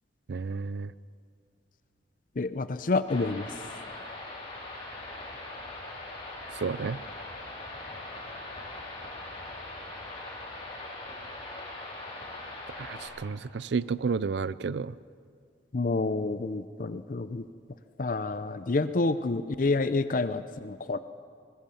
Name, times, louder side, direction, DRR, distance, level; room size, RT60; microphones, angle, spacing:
voice 1, 0.3-0.9 6.5-7.0 12.8-14.9, right 5 dB, 70° right, 18 dB, 0.4 m, -31 dB
voice 2, 2.4-3.5 15.7-17.4 18.0-21.0, left 3 dB, 50° left, 12 dB, 0.6 m, -28 dB
sound 1, 3.1-13.1, left 2 dB, 35° left, 4.8 m, -41 dB
20.5 x 20.5 x 7.0 m, 2.2 s
head